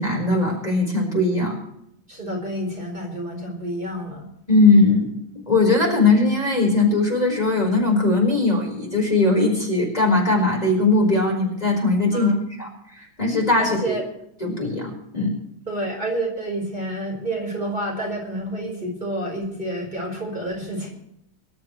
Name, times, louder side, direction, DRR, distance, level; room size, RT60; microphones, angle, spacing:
voice 1, 0.0-1.6 4.5-5.0 5.5-12.3 12.6-13.8 14.4-15.4, left 2 dB, 20° left, -1 dB, 4.7 m, -19 dB
voice 2, 2.1-4.3 12.1-12.4 13.6-14.0 15.7-20.9, right 1 dB, 25° right, -2 dB, 4.6 m, -29 dB
25.0 x 12.5 x 3.2 m, 0.77 s
omnidirectional pair, 2.1 m